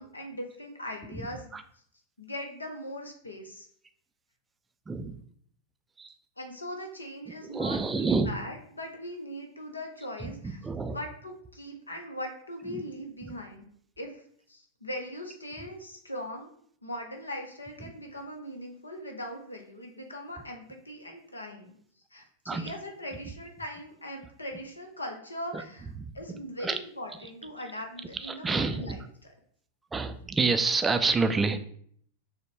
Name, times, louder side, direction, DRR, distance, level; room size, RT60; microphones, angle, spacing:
voice 1, 0.0-1.6 2.2-3.7 6.4-10.6 10.8-13.6 14.0-14.2 14.5-16.5 16.8-21.8 22.1-25.9 26.1-29.0, left 1 dB, 80° left, 3 dB, 0.7 m, -40 dB
voice 2, 4.9-5.2 6.0-6.1 7.5-8.3 10.2-11.0 12.7-12.8 13.2-13.3 17.8-17.9 22.5-22.7 25.5-25.6 26.0-26.1 26.6-26.8 28.1-29.0 29.9-31.6, right 4 dB, 15° right, 9 dB, 0.3 m, -28 dB
6.4 x 2.2 x 3.1 m, 0.62 s
figure-of-eight pair, 90°, 0 cm